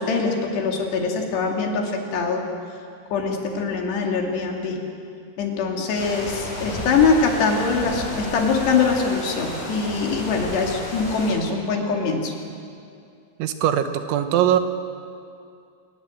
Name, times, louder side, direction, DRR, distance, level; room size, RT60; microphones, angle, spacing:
voice 1, 0.0-2.4 3.1-4.8 5.4-12.3, left 4 dB, 65° left, 1 dB, 4.5 m, -23 dB
sound 1, 5.9-11.3, left 1 dB, 40° left, 7.5 m, -32 dB
voice 2, 13.4-14.6, right 10 dB, 90° right, 8 dB, 3.6 m, -21 dB
24.5 x 20.5 x 7.8 m, 2.4 s
omnidirectional pair, 5.3 m